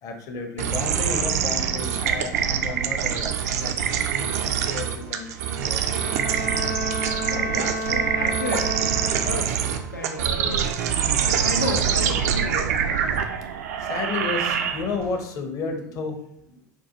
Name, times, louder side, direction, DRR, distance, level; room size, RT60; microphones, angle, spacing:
voice 1, 0.0-3.7 4.4-5.8 7.4-7.7 13.8-16.2 16.5-16.6, left 4 dB, 35° left, 4 dB, 0.5 m, -32 dB
sound 1, 0.6-15.1, right 8 dB, 55° right, 0.3 m, -25 dB
sound 2, 1.2-4.3, left 5 dB, 75° right, 1.0 m, -46 dB
Bowed string instrument, 5.7-9.8, right 1 dB, 65° left, 0.8 m, -31 dB
voice 2, 7.3-8.8 9.0-9.6 9.9-10.7 11.2-12.8, left 1 dB, 85° left, 1 dB, 0.4 m, -32 dB
4.4 x 2.2 x 2.7 m, 0.75 s
figure-of-eight pair, 80°, 10 cm